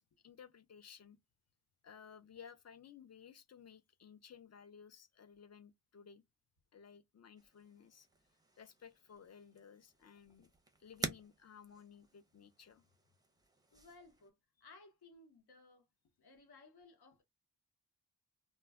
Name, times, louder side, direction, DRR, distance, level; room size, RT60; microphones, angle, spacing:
voice 1, 0.2-1.2 1.8-6.2 6.7-8.1 8.6-10.5 10.8-12.8, left 7 dB, 40° left, 0.4 m, -57 dB
sound 1, 7.4-14.3, right 2 dB, 10° right, 0.5 m, -49 dB
voice 2, 13.7-14.3 14.6-15.9 16.2-17.2, left 3 dB, 70° left, 0.8 m, -60 dB
2.2 x 2.1 x 3.4 m
wide cardioid pair, 95°, 41 cm